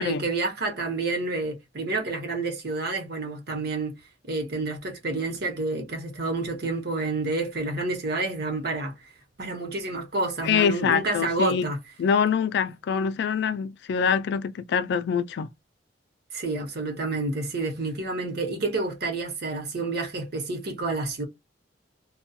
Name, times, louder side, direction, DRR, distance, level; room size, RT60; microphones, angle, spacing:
voice 1, 0.0-4.0 4.3-8.9 9.4-11.8 16.3-21.2, right 3 dB, 60° right, 0.9 m, -29 dB
voice 2, 10.4-11.7 12.0-15.5, left 7 dB, 65° left, 0.3 m, -24 dB
2.2 x 2.2 x 2.6 m
head